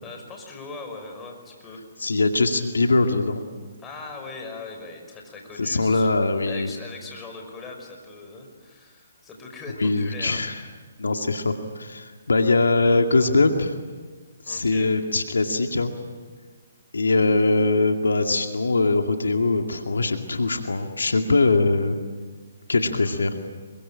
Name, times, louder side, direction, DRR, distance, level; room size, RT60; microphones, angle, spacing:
voice 1, 0.0-1.8 3.8-6.1 6.5-10.5 14.4-14.9, left 3 dB, 15° left, 2 dB, 5.8 m, -40 dB
voice 2, 2.0-3.4 5.6-6.7 9.8-10.6 11.0-13.7 14.5-15.9 16.9-22.0 22.7-23.3, left 3 dB, 80° left, 5 dB, 2.2 m, -22 dB
27.5 x 23.5 x 9.0 m, 1.5 s
figure-of-eight pair, 140°, 0 cm